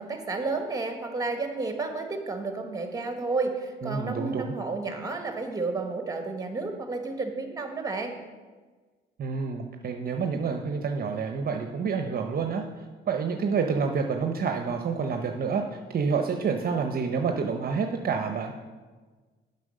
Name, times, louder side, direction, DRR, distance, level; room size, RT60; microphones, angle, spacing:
voice 1, 0.0-8.1, right 3 dB, 20° right, 5 dB, 1.3 m, -31 dB
voice 2, 3.8-4.5 9.2-12.6 13.1-18.5, right 5 dB, 50° right, 5 dB, 0.7 m, -28 dB
7.5 x 5.5 x 6.5 m, 1.4 s
cardioid pair, 90°, 20 cm